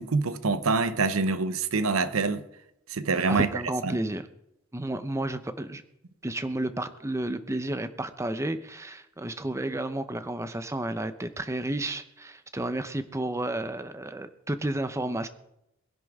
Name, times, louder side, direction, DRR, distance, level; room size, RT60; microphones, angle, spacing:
voice 1, 0.0-2.4 2.9-3.5 3.8-4.0, right 4 dB, 85° right, 0.8 m, -25 dB
voice 2, 3.3-4.3 4.7-5.8 6.2-15.3, right 1 dB, 15° right, 0.7 m, -31 dB
21.5 x 10.5 x 3.6 m
head